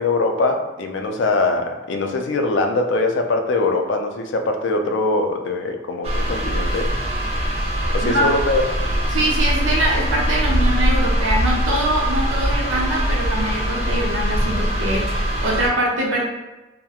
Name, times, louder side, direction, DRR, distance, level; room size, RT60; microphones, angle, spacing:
voice 1, 0.0-6.9 7.9-8.6, left 2 dB, 70° left, 4 dB, 0.3 m, -22 dB
sound 1, 6.0-15.7, equal, 35° right, 0.3 m, -22 dB
voice 2, 9.1-16.2, right 1 dB, 90° right, -1 dB, 0.6 m, -23 dB
2.3 x 2.0 x 2.7 m, 1.1 s
head